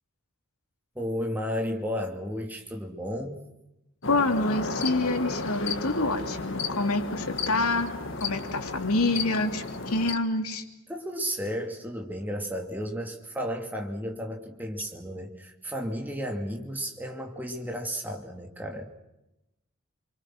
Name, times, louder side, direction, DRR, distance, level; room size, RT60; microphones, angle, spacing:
voice 1, 0.9-3.5 10.9-19.0, equal, 10° right, 1 dB, 2.6 m, -33 dB
sound 1, 4.0-10.2, left 3 dB, 55° left, 1.7 m, -33 dB
voice 2, 4.1-10.6, left 2 dB, 85° left, 5 dB, 2.8 m, -27 dB
28.0 x 25.0 x 6.2 m, 0.92 s
head